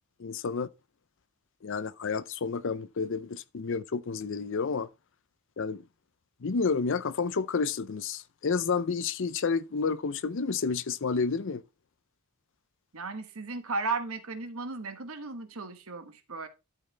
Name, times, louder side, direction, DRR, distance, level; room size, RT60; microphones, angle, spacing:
voice 1, 0.2-0.7 1.6-4.9 5.6-5.8 6.4-11.6, left 5 dB, 55° left, 0.5 m, -30 dB
voice 2, 12.9-16.5, right 3 dB, 65° right, 1.4 m, -35 dB
12.5 x 5.5 x 3.3 m
head